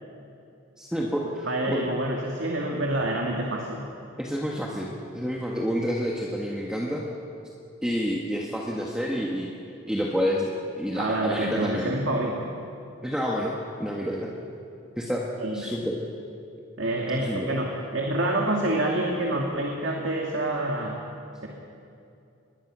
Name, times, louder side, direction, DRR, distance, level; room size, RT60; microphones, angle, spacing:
voice 1, 0.8-1.8 4.2-7.0 7.8-9.5 9.9-10.5 10.8-11.9 13.0-14.3 15.0-15.2 15.5-15.9 17.3-17.5, equal, 5° right, -3 dB, 1.6 m, -29 dB
voice 2, 1.5-3.8 11.0-12.5 15.4-15.7 16.8-21.0, right 1 dB, 65° right, -1 dB, 2.3 m, -27 dB
25.0 x 20.5 x 6.3 m, 2.7 s
head